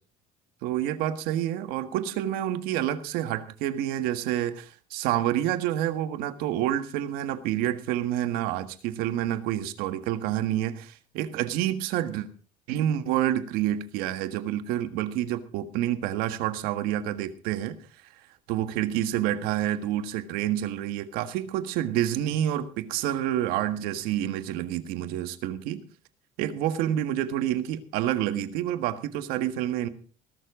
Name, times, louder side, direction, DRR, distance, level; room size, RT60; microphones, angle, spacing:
voice 1, 0.6-12.3 12.7-17.8 18.5-25.8 26.4-29.9, right 12 dB, 85° right, 10 dB, 1.6 m, -28 dB
19.0 x 12.0 x 3.8 m, 0.38 s
cardioid pair, 145°, 15 cm